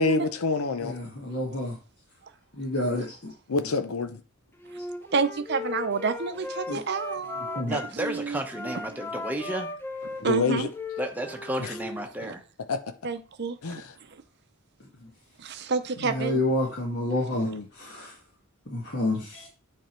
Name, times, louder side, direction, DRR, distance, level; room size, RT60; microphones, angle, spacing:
voice 1, 0.0-1.0 3.5-4.2 10.2-10.7 11.6-11.7 12.7-12.8 13.6-13.9 17.3-17.6, left 4 dB, 85° left, 0.7 m, -27 dB
voice 2, 0.8-1.8 2.6-3.3 6.7-6.8 7.3-7.7 16.0-18.1 18.7-19.5, left 1 dB, 50° left, 1.6 m, -29 dB
Wind instrument woodwind instrument, 4.6-7.9 8.5-12.0, left 3 dB, 10° left, 0.6 m, -37 dB
voice 3, 5.1-8.4 10.2-10.7 13.0-13.8 15.4-16.3, right 4 dB, 50° right, 0.7 m, -29 dB
voice 4, 7.7-9.7 11.0-12.4, right 1 dB, 10° right, 1.0 m, -32 dB
9.2 x 3.5 x 4.4 m
head